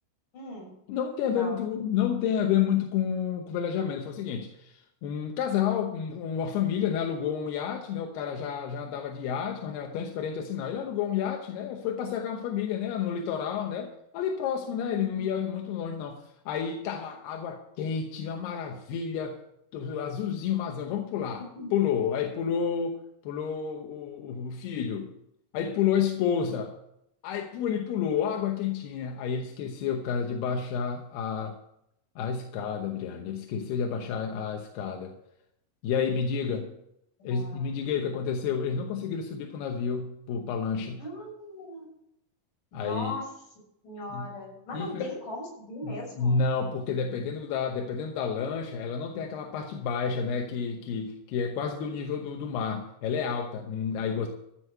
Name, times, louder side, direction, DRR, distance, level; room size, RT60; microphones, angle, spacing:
voice 1, 0.3-0.7 1.4-1.7 14.9-15.3 21.4-21.7 36.4-36.6 37.2-37.8 41.0-41.9 42.7-43.3 43.8-46.4, left 1 dB, 55° left, -4 dB, 7.9 m, -39 dB
voice 2, 0.9-19.4 19.7-21.4 21.7-25.1 25.5-26.7 27.2-31.5 32.2-35.1 35.8-36.7 37.2-41.0 42.7-43.1 44.1-44.3 44.7-45.1 45.8-54.3, left 7 dB, 90° left, 3 dB, 3.0 m, -30 dB
14.5 x 6.3 x 7.3 m, 0.77 s
omnidirectional pair, 4.5 m